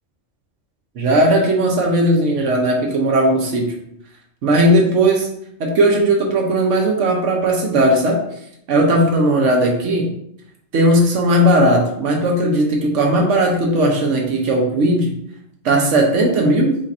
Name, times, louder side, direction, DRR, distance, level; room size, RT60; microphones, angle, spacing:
voice 1, 1.0-3.7 4.4-5.3 5.6-8.2 8.7-10.1 10.7-15.1 15.6-16.8, right 1 dB, 85° right, 0 dB, 1.2 m, -16 dB
4.3 x 2.5 x 4.1 m, 0.73 s
omnidirectional pair, 1.2 m